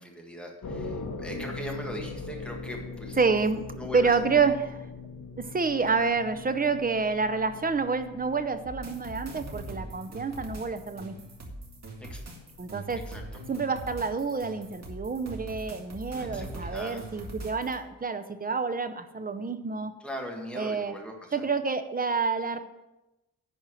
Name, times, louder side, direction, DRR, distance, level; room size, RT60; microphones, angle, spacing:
voice 1, 0.0-3.2 3.8-4.5 12.0-12.2 13.1-13.2 16.2-17.0 20.0-21.4, equal, 5° left, 0 dB, 1.7 m, -40 dB
sound 1, 0.6-15.4, left 3 dB, 55° left, 1.5 m, -42 dB
voice 2, 3.2-3.6 3.9-4.8 5.4-11.2 12.6-13.0 13.5-19.9 20.5-20.9 21.3-22.6, right 4 dB, 25° right, 10 dB, 0.6 m, -28 dB
sound 2, 8.6-17.8, right 1 dB, 45° right, 1.9 m, -42 dB
10.5 x 4.4 x 7.5 m, 1.0 s
wide cardioid pair, 135°, 38 cm